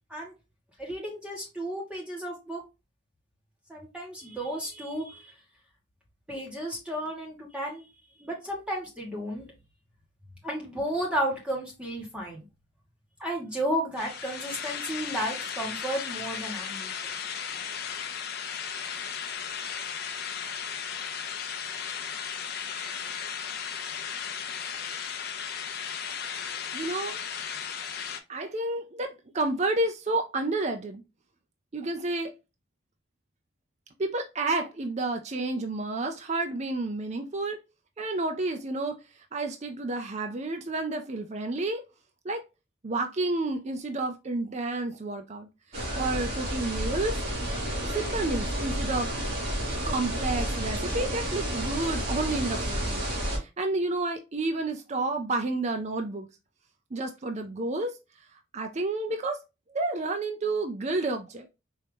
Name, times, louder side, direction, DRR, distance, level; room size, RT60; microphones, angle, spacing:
voice 1, 0.8-2.6 3.7-5.3 6.3-7.9 8.2-9.4 10.4-12.4 13.2-17.0, right 1 dB, 5° right, 1.3 m, -33 dB
sound 1, 14.0-28.2, left 7 dB, 50° left, 0.6 m, -35 dB
voice 2, 26.7-27.2 28.3-31.0 31.7-32.3 34.0-37.6 38.0-39.0 39.3-41.8 42.2-42.4 42.8-47.2 47.8-49.1 49.9-53.0 53.3-56.3 56.9-57.9 58.5-59.4 59.7-61.5, right 2 dB, 35° right, 0.5 m, -30 dB
sound 2, 45.7-53.4, right 1 dB, 50° right, 2.2 m, -31 dB
4.7 x 2.8 x 3.4 m
head